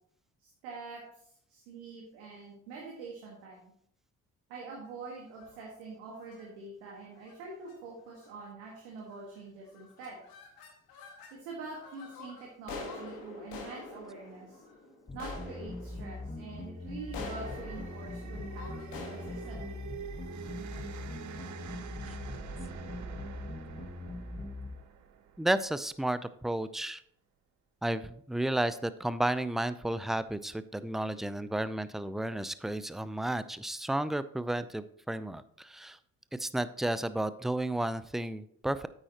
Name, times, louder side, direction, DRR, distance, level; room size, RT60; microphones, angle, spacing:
voice 1, 0.4-3.7 4.5-10.2 11.3-14.6 15.1-19.8, right 4 dB, 80° right, -2 dB, 1.6 m, -45 dB
sound 1, 5.3-5.7 6.2-6.5 7.2-7.4 7.7-7.8 8.1-8.5 9.0-9.4 9.7-11.4 11.7-20.9, left 3 dB, 65° left, 1.9 m, -47 dB
sound 2, 15.1-24.7, left 2 dB, 20° left, 1.3 m, -41 dB
sound 3, 16.7-26.0, right 8 dB, 50° right, 0.9 m, -47 dB
voice 2, 25.4-27.0 27.8-36.0 36.3-38.9, right 1 dB, ahead, 15 dB, 0.5 m, -32 dB
8.9 x 8.8 x 2.9 m, 0.66 s
hypercardioid pair, 45°, 38 cm